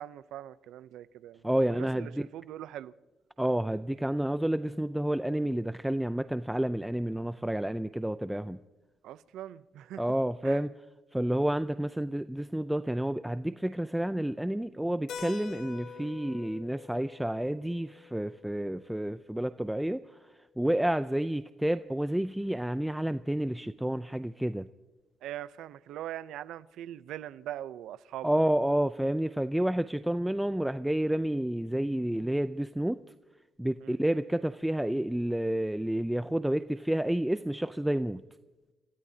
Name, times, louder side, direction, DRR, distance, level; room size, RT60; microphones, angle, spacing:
voice 1, 0.0-2.9 9.0-10.1 10.4-10.6 15.9-16.1 20.6-20.8 25.2-28.5 33.8-34.0, right 12 dB, 85° right, 0.6 m, -42 dB
voice 2, 1.4-2.1 3.4-8.6 10.0-10.7 11.1-20.0 20.6-24.7 28.2-33.0 33.6-38.2, right 1 dB, 5° right, 0.4 m, -30 dB
Keyboard (musical), 15.1-19.5, left 6 dB, 75° left, 3.8 m, -46 dB
29.5 x 16.5 x 2.8 m
cardioid pair, 90°, 0 cm